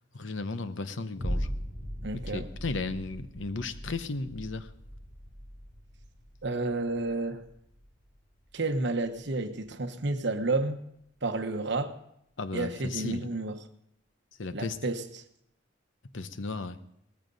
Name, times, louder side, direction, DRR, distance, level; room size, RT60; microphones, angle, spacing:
voice 1, 0.1-1.5 2.1-4.7 12.4-13.2 14.4-14.8 16.1-16.8, left 3 dB, 75° left, 12 dB, 0.8 m, -35 dB
sound 1, 1.2-9.7 10.2-10.3, equal, 15° left, 7.5 m, -40 dB
voice 2, 2.0-2.5 6.4-7.4 8.5-10.8 11.2-11.9 12.5-13.6 14.5-15.2, right 2 dB, 65° right, 8 dB, 1.1 m, -31 dB
17.5 x 14.0 x 4.0 m, 0.74 s
head